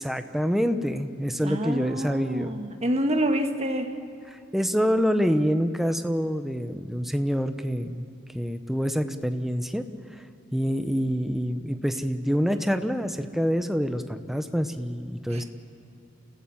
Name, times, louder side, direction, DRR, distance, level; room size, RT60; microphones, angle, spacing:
voice 1, 0.0-2.6 4.3-8.1 8.3-9.8 10.5-15.4, equal, ahead, 8 dB, 0.9 m, -26 dB
voice 2, 1.4-3.9 15.3-15.4, right 1 dB, 35° right, 5 dB, 1.6 m, -27 dB
29.5 x 15.5 x 7.2 m, 2.7 s
head